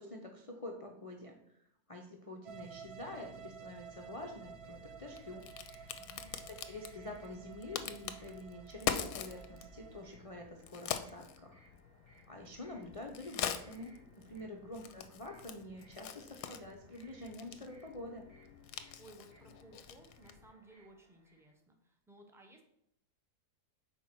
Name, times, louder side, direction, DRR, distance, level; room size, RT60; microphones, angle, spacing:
voice 1, 0.0-1.4 1.9-5.4 6.5-11.6 12.3-18.2, left 1 dB, 55° left, 1 dB, 0.3 m, -47 dB
sound 1, 2.5-10.0, right 7 dB, 75° right, 1.2 m, -52 dB
Crack, 4.4-20.5, left 9 dB, 70° left, 1.0 m, -44 dB
sound 2, 4.5-21.5, right 2 dB, 45° right, 2.0 m, -67 dB
voice 2, 5.9-6.4 14.3-14.7 19.0-22.6, right 1 dB, 5° right, 2 dB, 0.5 m, -59 dB
4.6 x 4.4 x 5.8 m, 0.73 s
omnidirectional pair, 1.7 m